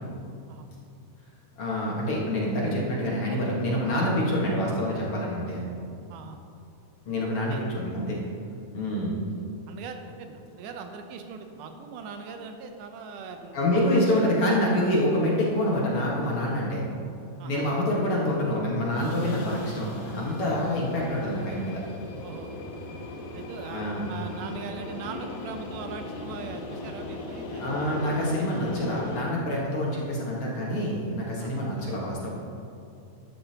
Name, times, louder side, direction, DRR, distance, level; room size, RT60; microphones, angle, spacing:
voice 1, 1.6-5.7 7.1-8.2 8.7-9.2 13.5-16.8 17.4-21.8 23.7-24.1 27.6-32.3, left 1 dB, 50° left, -4 dB, 2.2 m, -26 dB
voice 2, 9.7-13.6 14.0-14.2 17.4-17.6 22.2-22.6 23.3-27.7 31.4-31.5, right 5 dB, 85° right, 5 dB, 2.3 m, -40 dB
sound 1, 13.4-16.5 18.8-29.2, left 2 dB, 75° left, 2.5 m, -39 dB
12.5 x 11.5 x 2.9 m, 2.6 s
omnidirectional pair, 3.6 m